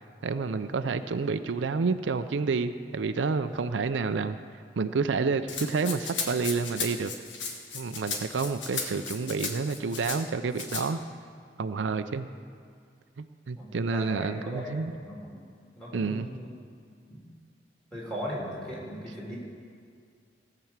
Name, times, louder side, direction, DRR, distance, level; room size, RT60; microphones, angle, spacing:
voice 1, 0.2-4.4 4.8-7.1 7.7-11.0 11.6-12.3 13.2-14.9 15.9-16.3, right 4 dB, 85° right, 10 dB, 0.5 m, -29 dB
Rattle (instrument), 5.5-10.2 10.5-10.8, left 5 dB, 90° left, 1.5 m, -35 dB
voice 2, 13.5-14.7 15.0-15.4 15.7-16.5 17.0-17.2 17.9-19.4, equal, 5° left, -6 dB, 3.3 m, -38 dB
17.5 x 6.0 x 7.3 m, 2.2 s
head